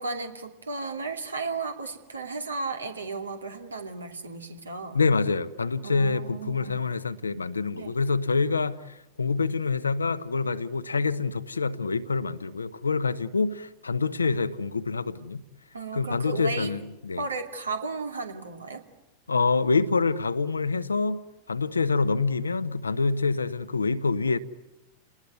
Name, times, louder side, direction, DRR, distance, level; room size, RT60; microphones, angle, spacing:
voice 1, 0.0-5.0 5.8-6.8 7.7-7.9 15.7-16.7 17.2-18.8, right 3 dB, 75° right, 2.7 m, -34 dB
voice 2, 4.9-15.4 15.9-17.2 19.3-21.2 21.5-24.4, left 4 dB, 75° left, 1.0 m, -26 dB
29.5 x 20.0 x 9.6 m
figure-of-eight pair, 90°, 0 cm